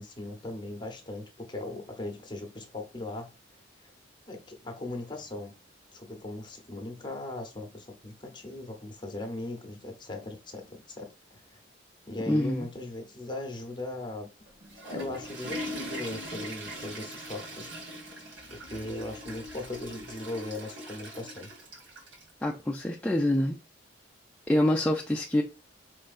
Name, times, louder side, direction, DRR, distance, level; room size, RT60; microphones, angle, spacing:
voice 1, 0.0-3.3 3.8-3.9 4.3-5.6 5.9-11.6 12.1-14.3 14.8-17.7 18.5-21.5, left 2 dB, 25° left, 0.8 m, -39 dB
voice 2, 12.3-12.7 22.4-23.6 24.5-25.4, left 1 dB, 5° left, 0.3 m, -26 dB
Water / Toilet flush, 14.5-22.3, equal, 80° right, 1.5 m, -40 dB
4.5 x 3.2 x 2.5 m
head